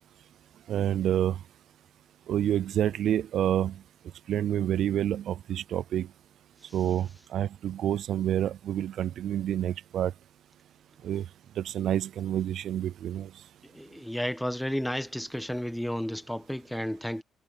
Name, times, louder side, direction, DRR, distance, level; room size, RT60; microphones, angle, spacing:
voice 1, 0.7-1.4 2.3-3.8 4.3-6.1 6.7-10.1 11.0-11.2 11.6-13.3, right 11 dB, 70° right, 0.4 m, -28 dB
voice 2, 13.7-17.2, equal, 5° left, 1.6 m, -32 dB
cardioid pair, 90°, 0 cm